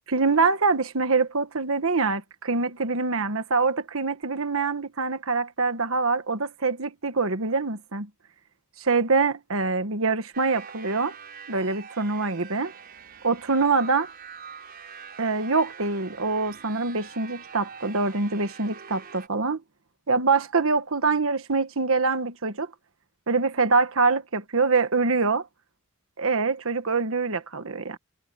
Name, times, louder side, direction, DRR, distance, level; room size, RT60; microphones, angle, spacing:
voice 1, 0.1-8.1 8.8-11.1 11.5-12.7 13.2-14.1 15.2-19.6 20.1-22.7 23.3-25.5 26.2-28.0, right 4 dB, 70° right, 1.4 m, -24 dB
sound 1, 10.3-19.3, right 6 dB, 45° right, 5.3 m, -44 dB
head